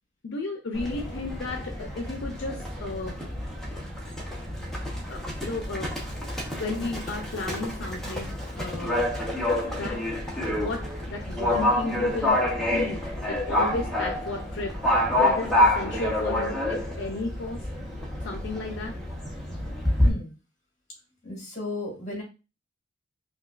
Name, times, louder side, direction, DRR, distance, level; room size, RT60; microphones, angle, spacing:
voice 1, 0.2-3.2 5.1-6.0 6.5-9.3 9.8-10.0 10.5-12.4 12.7-17.7 18.2-19.0, left 3 dB, 70° left, 3 dB, 0.5 m, -34 dB
Livestock farm animals working animals, 0.7-20.1, left 1 dB, ahead, 0.8 m, -28 dB
voice 2, 21.2-22.2, left 2 dB, 40° left, -2 dB, 1.7 m, -34 dB
5.1 x 2.2 x 2.4 m, 0.30 s
head